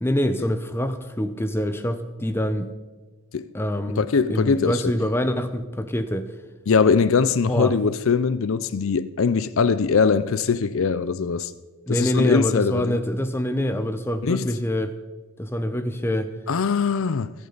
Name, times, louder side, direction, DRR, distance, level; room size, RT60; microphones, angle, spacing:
voice 1, 0.0-2.7 3.5-6.3 7.5-7.7 11.9-14.9 15.4-16.3, equal, 10° left, 0.6 m, -25 dB
voice 2, 4.0-4.9 6.7-11.5 11.9-13.0 14.2-14.5 16.5-17.3, left 5 dB, 65° left, 0.5 m, -21 dB
23.0 x 8.7 x 4.0 m
head